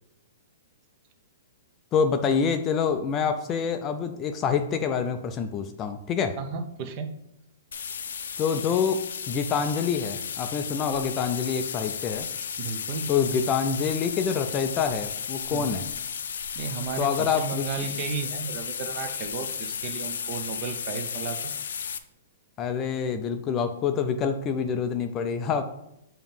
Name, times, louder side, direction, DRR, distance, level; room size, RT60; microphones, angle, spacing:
voice 1, 1.9-6.4 8.4-12.3 13.1-15.9 17.0-17.9 22.6-25.6, left 6 dB, 20° left, 7 dB, 0.3 m, -26 dB
voice 2, 6.4-7.1 12.6-13.1 15.5-15.8 16.6-21.5, right 5 dB, 30° right, 7 dB, 0.6 m, -34 dB
sound 1, 7.7-22.0, left 7 dB, 75° left, 0.5 m, -34 dB
7.1 x 2.9 x 5.4 m, 0.81 s
hypercardioid pair, 170°, 0 cm